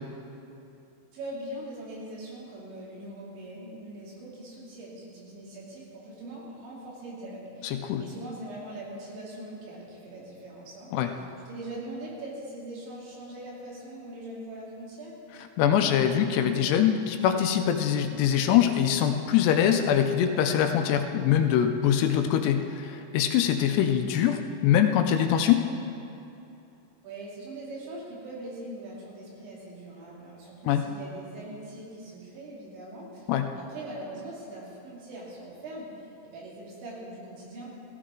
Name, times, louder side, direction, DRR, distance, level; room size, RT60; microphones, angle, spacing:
voice 1, 1.1-15.2 27.0-33.3 33.5-37.8, right 1 dB, 90° right, -5 dB, 5.1 m, -41 dB
voice 2, 7.6-8.0 10.9-11.1 15.6-25.6 30.7-30.8 33.3-33.5, left 9 dB, 80° left, 6 dB, 2.6 m, -23 dB
16.5 x 14.5 x 3.8 m, 2.8 s
omnidirectional pair, 5.1 m